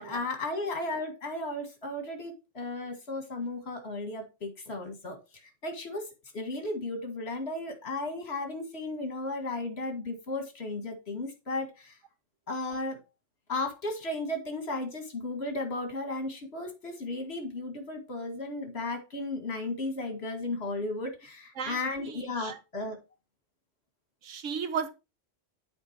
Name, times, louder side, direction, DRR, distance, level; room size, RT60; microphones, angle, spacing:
voice 1, 0.0-6.1 6.3-12.0 12.5-13.0 13.5-23.0, left 2 dB, 55° left, 2.2 m, -35 dB
voice 2, 21.6-22.6 24.2-24.9, right 6 dB, 85° right, 1.3 m, -35 dB
8.3 x 4.5 x 4.5 m
omnidirectional pair, 1.3 m